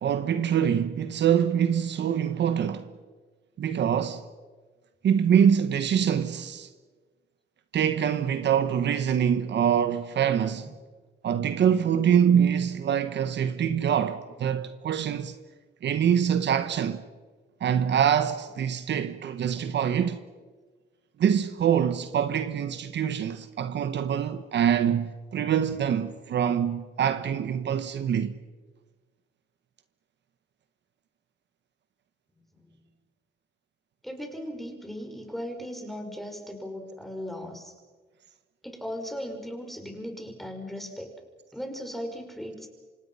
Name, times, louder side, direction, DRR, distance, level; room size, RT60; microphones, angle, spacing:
voice 1, 0.0-2.9 3.6-4.2 5.0-6.7 7.7-10.7 11.2-15.3 15.8-17.0 17.6-20.2 21.2-28.3, right 8 dB, 60° right, 1.3 m, -24 dB
voice 2, 34.0-37.7 38.6-41.1 41.5-42.7, equal, ahead, 5.8 m, -37 dB
28.5 x 25.5 x 5.7 m
cardioid pair, 90°, 20 cm